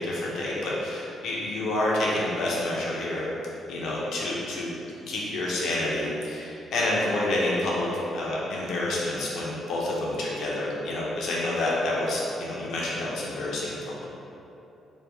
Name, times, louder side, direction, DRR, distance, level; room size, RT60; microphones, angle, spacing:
voice 1, 0.0-3.3 3.7-4.7 5.1-13.9, left 1 dB, 75° left, -5 dB, 0.6 m, -28 dB
3.3 x 2.2 x 3.3 m, 2.9 s
cardioid pair, 90°, 0 cm